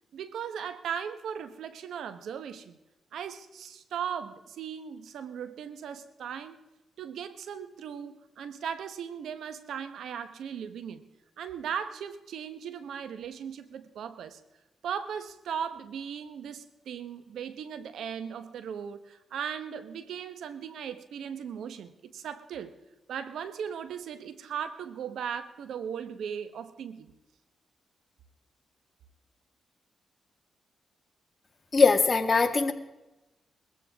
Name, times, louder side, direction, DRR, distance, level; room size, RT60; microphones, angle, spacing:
voice 1, 0.1-2.8 3.1-6.6 7.0-11.1 11.4-14.4 14.8-22.7 23.1-27.1, right 8 dB, 80° right, 12 dB, 1.2 m, -38 dB
voice 2, 31.7-32.7, left 4 dB, 40° left, 7 dB, 1.7 m, -21 dB
21.0 x 15.5 x 3.6 m, 0.99 s
cardioid pair, 70°, 0 cm